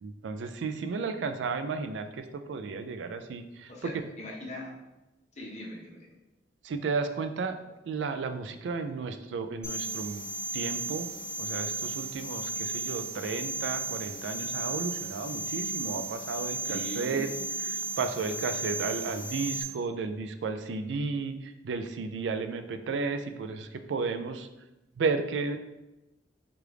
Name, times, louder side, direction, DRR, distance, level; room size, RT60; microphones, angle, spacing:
voice 1, 0.0-4.0 6.6-7.6 7.9-10.3 10.5-11.1 11.4-17.3 17.7-24.5 25.0-25.6, right 4 dB, 85° right, 8 dB, 0.3 m, -33 dB
voice 2, 3.7-4.7 5.4-6.1 16.6-17.5, equal, 40° left, -2 dB, 0.8 m, -40 dB
sound 1, 9.6-19.6, right 2 dB, 5° right, 1.0 m, -35 dB
4.8 x 2.4 x 3.2 m, 0.99 s
head